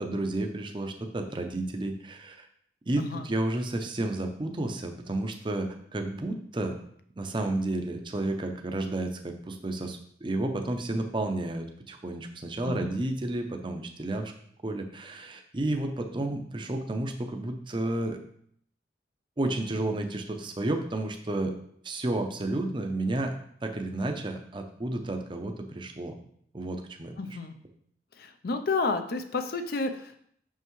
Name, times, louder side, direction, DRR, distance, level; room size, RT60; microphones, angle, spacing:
voice 1, 0.0-2.5 2.9-6.7 7.2-14.3 14.6-18.2 19.4-21.5 21.8-23.3 23.6-26.1 26.5-27.1, right 2 dB, 30° right, 5 dB, 0.6 m, -31 dB
voice 2, 3.0-3.3 12.6-13.0 27.2-27.5 28.2-30.3, left 3 dB, 60° left, 8 dB, 0.6 m, -31 dB
6.1 x 5.5 x 3.1 m, 0.65 s
head